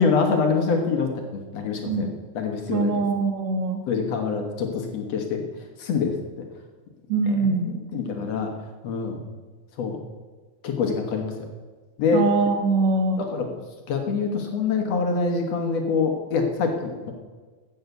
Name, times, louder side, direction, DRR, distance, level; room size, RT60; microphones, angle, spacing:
voice 1, 0.0-2.1 2.4-3.0 3.9-5.4 5.8-6.1 7.4-8.5 8.8-9.2 9.8-10.0 10.6-11.3 12.0-12.2 13.2-13.5 13.9-17.1, left 5 dB, 65° left, 4 dB, 2.3 m, -25 dB
voice 2, 2.7-3.8 7.1-7.7 12.1-13.2, right 3 dB, 55° right, 5 dB, 2.3 m, -23 dB
14.0 x 7.1 x 8.2 m, 1.4 s
omnidirectional pair, 3.4 m